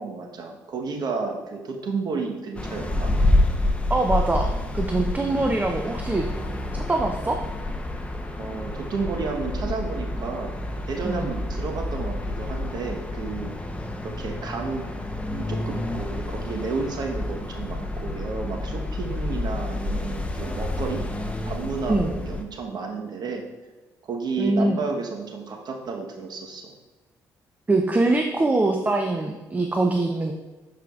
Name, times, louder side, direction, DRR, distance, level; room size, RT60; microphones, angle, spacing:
voice 1, 0.0-3.1 8.4-10.5 10.9-13.5 14.0-14.8 15.3-21.0 21.4-23.4 24.0-26.7, right 4 dB, 55° right, 2 dB, 1.1 m, -31 dB
sound 1, 2.6-22.4, left 1 dB, 15° left, 0.8 m, -28 dB
voice 2, 3.9-4.5 4.7-6.3 6.9-7.4 11.0-11.3 21.9-22.2 24.4-24.8 27.7-30.3, right 2 dB, 20° right, 3 dB, 0.6 m, -23 dB
9.1 x 4.9 x 2.4 m, 1.3 s
supercardioid pair, 65°, 8 cm